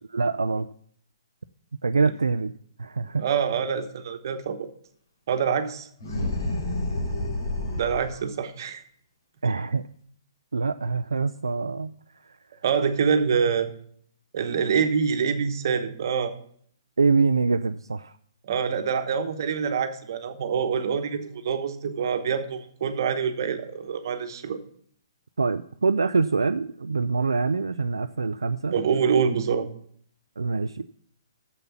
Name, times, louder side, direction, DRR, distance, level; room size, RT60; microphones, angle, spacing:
voice 1, 0.1-0.7 1.8-2.5 2.8-3.3 9.4-9.9 10.5-12.0 12.2-12.4 17.0-18.1 25.4-28.7 30.4-30.9, right 4 dB, 90° right, 10 dB, 0.4 m, -25 dB
voice 2, 3.2-4.7 5.3-5.9 7.7-8.8 12.6-13.7 14.3-16.3 18.4-24.6 28.7-29.7, right 6 dB, 55° right, 8 dB, 1.1 m, -25 dB
sound 1, 6.0-8.2, left 1 dB, 65° left, 3.9 m, -29 dB
7.1 x 6.8 x 7.1 m, 0.62 s
hypercardioid pair, 135°, 2 cm